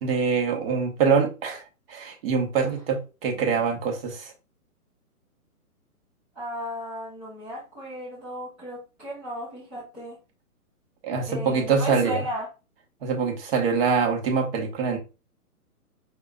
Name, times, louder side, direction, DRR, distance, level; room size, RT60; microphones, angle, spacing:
voice 1, 0.0-1.6 1.9-4.3 11.0-12.2 13.0-15.0, right 5 dB, 40° right, 1.4 m, -24 dB
voice 2, 6.3-10.2 11.3-12.5, equal, 5° right, 0.5 m, -35 dB
5.3 x 3.6 x 2.3 m
hypercardioid pair, 145°, 45 cm